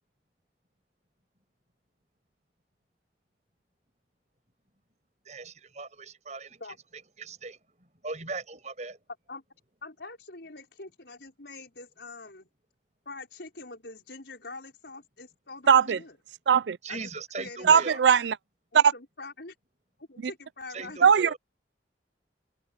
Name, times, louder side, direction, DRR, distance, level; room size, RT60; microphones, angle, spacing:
voice 1, 5.2-6.6 7.2-9.0 16.8-18.0 20.7-21.4, right 3 dB, 40° right, 7.6 m, -39 dB
voice 2, 9.8-12.5 13.0-16.2 16.9-17.1 17.4-18.1 18.7-19.5 20.0-21.1, left 3 dB, 70° left, 5.1 m, -44 dB
voice 3, 15.7-16.0 16.5-16.8 17.7-18.3 18.7-18.8 20.2-20.3 21.0-21.3, right 7 dB, 75° right, 0.4 m, -19 dB
head